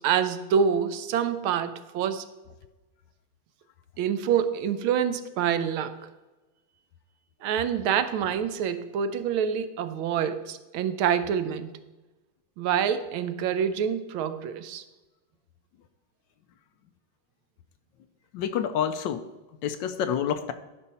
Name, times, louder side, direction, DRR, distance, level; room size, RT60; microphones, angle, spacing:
voice 1, 0.0-2.3 4.0-6.1 7.4-11.7 12.6-14.8, right 8 dB, 85° right, 1.5 m, -26 dB
voice 2, 18.3-19.3 19.6-20.5, left 8 dB, 75° left, 1.1 m, -28 dB
12.0 x 5.4 x 4.2 m
omnidirectional pair, 2.2 m